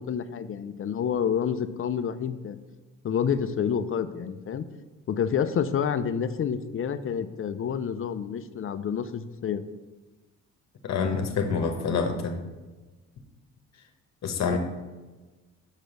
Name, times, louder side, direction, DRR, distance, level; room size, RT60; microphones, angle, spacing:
voice 1, 0.0-2.6 3.0-4.7 5.1-9.6 14.5-14.6, left 7 dB, 45° left, 12 dB, 0.6 m, -28 dB
voice 2, 10.8-12.4 14.2-14.6, left 5 dB, 60° left, 5 dB, 1.1 m, -27 dB
6.6 x 4.9 x 6.3 m, 1.2 s
cardioid pair, 90°, 30 cm